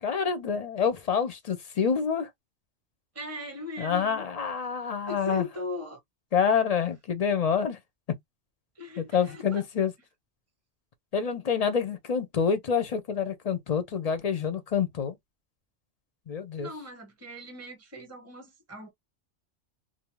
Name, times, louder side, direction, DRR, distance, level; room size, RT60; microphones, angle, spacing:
voice 1, 0.0-2.3 3.8-5.5 6.3-7.8 9.0-9.9 11.1-15.2 16.3-16.7, left 6 dB, 45° left, 0.5 m, -27 dB
voice 2, 3.1-4.2 5.1-6.0 8.8-9.6 16.6-18.9, left 1 dB, 15° right, 0.8 m, -39 dB
2.6 x 2.1 x 3.0 m
omnidirectional pair, 1.2 m